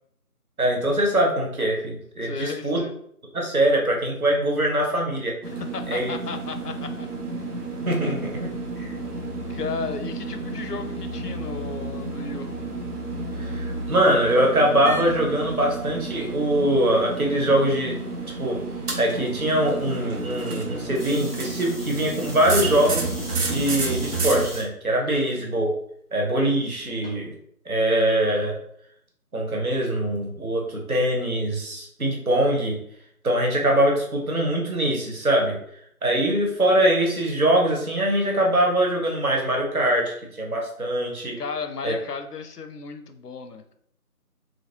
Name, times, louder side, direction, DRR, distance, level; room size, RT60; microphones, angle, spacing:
voice 1, 0.6-2.8 3.3-5.3 5.9-6.1 7.9-8.5 8.8-8.9 13.4-18.0 18.4-18.6 19.0-23.1 23.5-25.7 26.1-27.3 27.7-28.6 29.3-32.8 33.2-35.6 36.0-41.4 41.8-42.0, right 1 dB, 65° right, -1 dB, 1.1 m, -23 dB
voice 2, 2.2-3.0 5.4-7.1 8.0-8.2 9.0-12.5 25.0-25.4 41.4-43.6, left 4 dB, 90° left, 8 dB, 0.6 m, -35 dB
sound 1, 5.4-24.5, right 3 dB, 85° right, 0.8 m, -31 dB
sound 2, 20.9-24.6 25.3-25.8 27.0-27.1, equal, 40° right, 0.9 m, -40 dB
2.9 x 2.6 x 2.8 m, 0.69 s
figure-of-eight pair, 165°, 46 cm